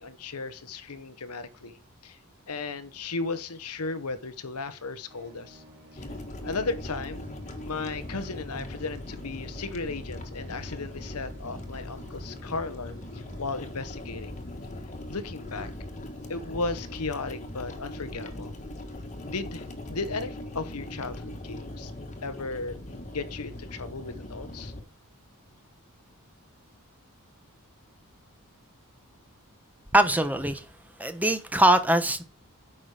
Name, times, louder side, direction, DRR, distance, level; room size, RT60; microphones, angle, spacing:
voice 1, 0.0-2.2 2.5-5.6 5.9-6.0 6.4-7.3 7.6-14.3 15.1-15.7 16.3-18.5 19.2-21.9 22.2-22.8 23.1-24.7, left 3 dB, 80° left, 1.1 m, -35 dB
sound 1, 5.0-13.6, equal, 55° right, 3.5 m, -53 dB
sound 2, 6.0-24.8, left 1 dB, 35° left, 1.6 m, -40 dB
voice 2, 29.9-30.6 31.0-32.2, right 1 dB, 5° right, 1.1 m, -22 dB
9.5 x 6.2 x 4.9 m
head